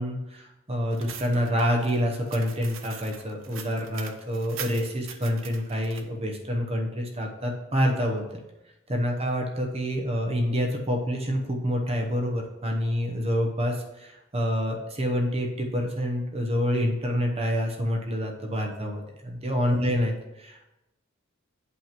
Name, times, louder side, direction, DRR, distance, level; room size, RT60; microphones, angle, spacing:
voice 1, 0.0-8.4 8.9-20.7, equal, 30° right, 1 dB, 0.8 m, -27 dB
sound 1, 0.9-6.0, right 8 dB, 80° right, 0.6 m, -42 dB
8.2 x 3.0 x 5.8 m, 0.95 s
head